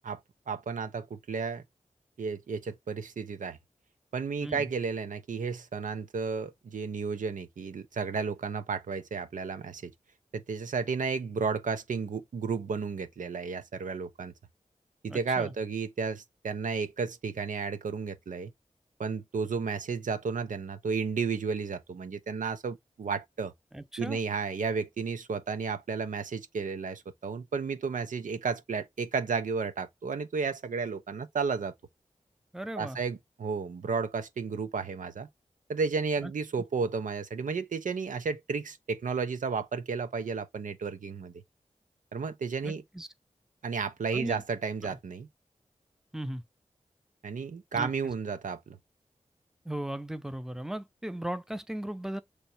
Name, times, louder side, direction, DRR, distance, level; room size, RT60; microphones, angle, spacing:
voice 1, 0.5-1.6 2.2-3.6 4.1-9.9 10.3-14.3 15.0-18.5 19.0-23.5 24.0-31.7 32.8-35.3 35.7-41.3 42.1-42.8 43.6-45.3 47.2-48.8, right 5 dB, 85° right, 0.8 m, -32 dB
voice 2, 15.1-15.5 23.7-24.2 32.5-33.0 36.2-36.3 42.6-43.1 44.1-44.4 44.8-45.0 46.1-46.4 47.7-48.1 49.6-52.2, right 1 dB, 5° right, 0.8 m, -37 dB
6.6 x 3.2 x 4.4 m
cardioid pair, 40°, 13 cm